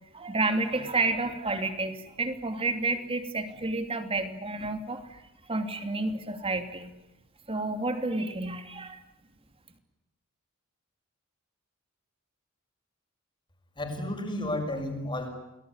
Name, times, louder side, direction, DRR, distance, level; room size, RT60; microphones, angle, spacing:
voice 1, 0.1-5.2 5.5-6.9 7.5-9.0, right 3 dB, 25° right, 8 dB, 2.9 m, -30 dB
voice 2, 13.8-15.3, left 1 dB, 20° left, 4 dB, 6.4 m, -32 dB
30.0 x 20.0 x 9.7 m, 0.92 s
head